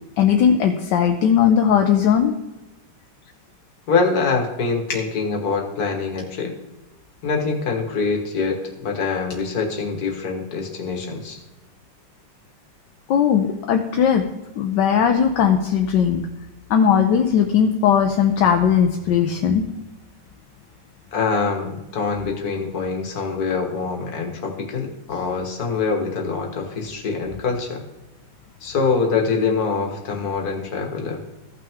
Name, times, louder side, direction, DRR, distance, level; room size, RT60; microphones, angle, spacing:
voice 1, 0.2-2.3 13.1-14.2 14.6-16.2 16.7-19.6, left 8 dB, 75° left, 4 dB, 1.4 m, -18 dB
voice 2, 3.9-6.6 7.2-11.4 21.1-27.8 28.6-31.2, left 4 dB, 55° left, 1 dB, 1.9 m, -24 dB
15.0 x 5.9 x 3.5 m, 1.0 s
omnidirectional pair, 2.0 m